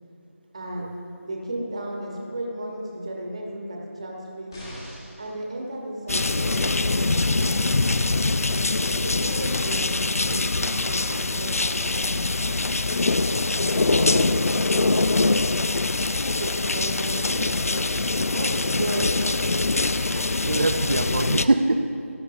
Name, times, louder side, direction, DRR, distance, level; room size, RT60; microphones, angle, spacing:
voice 1, 0.5-0.9 1.3-4.6 5.2-8.4 9.0-12.3 13.6-15.3 16.4-17.9 18.3-19.2, right 1 dB, 25° right, 0 dB, 1.2 m, -34 dB
sound 1, 4.5-5.3 6.9-7.0, equal, 15° left, 1.4 m, -40 dB
sound 2, 6.1-21.5, left 3 dB, 80° left, 0.5 m, -23 dB
voice 2, 14.0-14.4 20.1-22.1, right 2 dB, 40° right, 5 dB, 0.4 m, -25 dB
17.5 x 11.5 x 2.6 m, 2.9 s
figure-of-eight pair, 175°, 8 cm